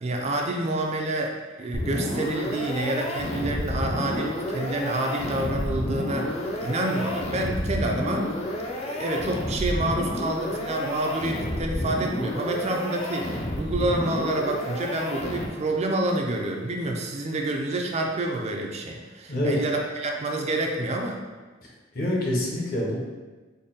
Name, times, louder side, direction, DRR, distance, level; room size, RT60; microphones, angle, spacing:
voice 1, 0.0-8.3 8.8-21.2, right 2 dB, 35° right, 1 dB, 0.4 m, -28 dB
sound 1, 1.7-15.8, left 1 dB, 35° left, 0.5 m, -30 dB
voice 2, 21.9-23.0, left 1 dB, 50° left, -3 dB, 0.8 m, -26 dB
3.9 x 2.1 x 3.7 m, 1.3 s
head